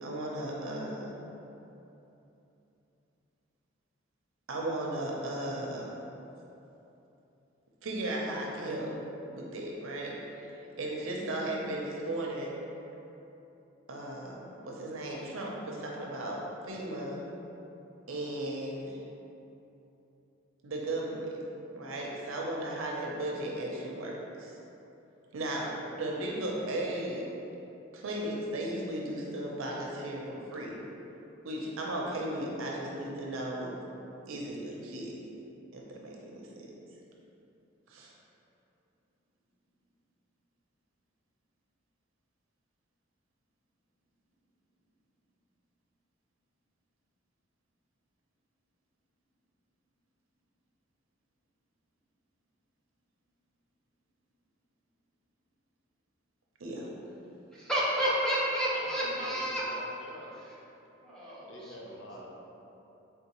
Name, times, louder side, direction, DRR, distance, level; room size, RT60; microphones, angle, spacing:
voice 1, 0.0-1.2 4.5-5.9 7.8-8.9 9.3-10.5 10.8-12.5 13.9-17.2 18.1-19.0 20.6-21.4 21.7-24.5 25.3-27.2 27.9-30.8 31.4-33.8 34.3-35.1 35.7-36.7 37.9-38.1 56.6-56.9, right 1 dB, 90° right, -2 dB, 0.6 m, -36 dB
voice 2, 57.5-59.6 61.0-61.7, equal, 5° left, -8 dB, 0.7 m, -30 dB
voice 3, 58.7-60.3 61.5-62.4, equal, 70° left, -3 dB, 0.6 m, -46 dB
3.6 x 3.6 x 3.0 m, 2.9 s
head